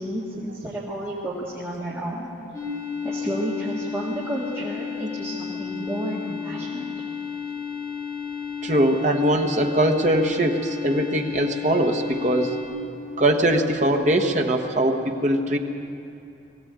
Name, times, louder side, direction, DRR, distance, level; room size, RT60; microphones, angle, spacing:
voice 1, 0.0-2.3 3.0-6.9, right 1 dB, 10° right, -7 dB, 2.1 m, -31 dB
sound 1, 2.5-12.6, left 7 dB, 10° left, 5.9 m, -32 dB
voice 2, 8.6-12.6 13.2-15.6, right 1 dB, 35° right, 3 dB, 1.3 m, -21 dB
20.5 x 16.5 x 8.2 m, 2.7 s
head